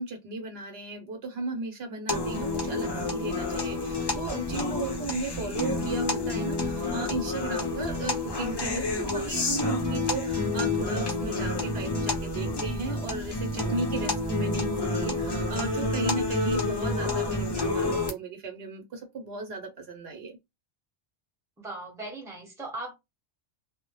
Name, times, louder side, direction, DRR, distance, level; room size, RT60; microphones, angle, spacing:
voice 1, 0.0-20.3, right 3 dB, 70° right, 0.8 m, -36 dB
sound 1, 2.1-18.1, left 2 dB, 40° left, 0.3 m, -29 dB
voice 2, 9.5-9.9 21.6-22.9, right 2 dB, 5° right, 0.8 m, -39 dB
2.0 x 2.0 x 2.9 m
omnidirectional pair, 1.2 m